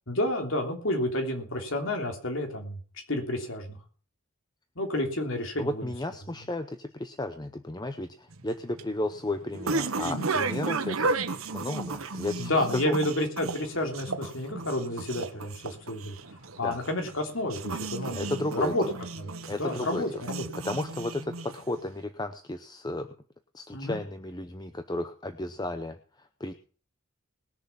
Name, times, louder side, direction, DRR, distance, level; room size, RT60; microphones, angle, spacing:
voice 1, 0.1-2.8 3.1-3.8 4.7-5.9 10.0-10.3 12.3-16.1 16.6-18.8 19.2-19.3 19.6-20.5 23.7-24.0, left 1 dB, 75° left, 3 dB, 3.1 m, -30 dB
voice 2, 5.6-11.2 11.5-12.5 12.8-13.0 16.6-16.8 18.1-18.7 19.5-20.0 20.6-23.1 23.5-26.0 26.4-26.5, left 2 dB, 20° left, 8 dB, 0.7 m, -33 dB
sound 1, 8.3-21.9, right 3 dB, 90° right, 1.2 m, -34 dB
20.5 x 7.0 x 5.7 m, 0.40 s
head